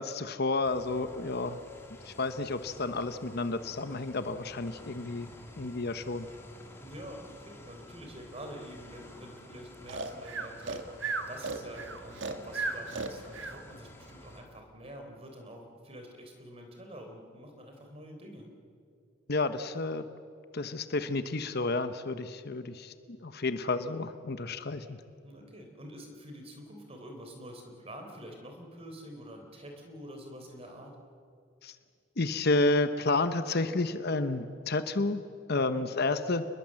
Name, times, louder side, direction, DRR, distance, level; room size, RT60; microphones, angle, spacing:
voice 1, 0.0-1.6 2.0-5.3 5.6-6.3 19.3-20.1 20.5-25.0 31.6-31.8 32.2-35.2 35.5-36.5, left 3 dB, 50° left, 10 dB, 0.9 m, -31 dB
sound 1, 0.6-14.4, left 1 dB, 10° left, 2.9 m, -51 dB
voice 2, 6.8-10.8 11.3-18.5 25.2-30.9 35.6-35.9, equal, 30° right, 3 dB, 3.8 m, -47 dB
Breathing, 9.9-13.6, right 3 dB, 60° right, 1.7 m, -35 dB
28.5 x 21.0 x 7.6 m, 2.4 s
head